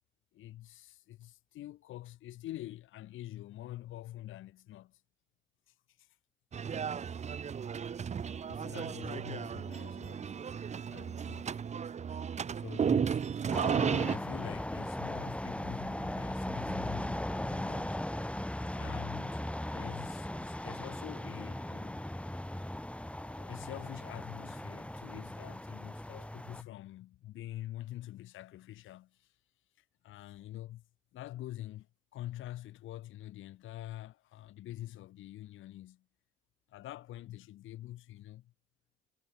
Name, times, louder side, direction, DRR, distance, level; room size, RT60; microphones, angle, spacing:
voice 1, 0.3-5.0 5.7-6.2 8.4-10.3 10.9-11.6 12.6-18.0 18.7-19.4 19.7-22.0 23.2-29.3 29.8-30.8 31.1-31.9 32.1-36.0 36.7-38.5, left 14 dB, 85° left, 3.0 m, -46 dB
sound 1, 6.5-14.2, right 7 dB, 35° right, 0.7 m, -34 dB
sound 2, 13.5-26.6, left 1 dB, 5° left, 4.3 m, -38 dB
cardioid pair, 90°, 20 cm